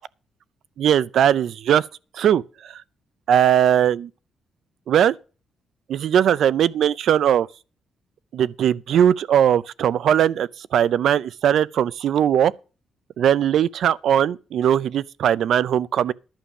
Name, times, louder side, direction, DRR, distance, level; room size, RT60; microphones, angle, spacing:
voice 1, 0.8-1.9 2.2-2.4 3.3-4.1 4.9-5.2 5.9-7.5 8.3-12.5 13.2-16.1, right 9 dB, 70° right, 0.4 m, -19 dB
11.5 x 6.9 x 6.0 m
cardioid pair, 120°, 0 cm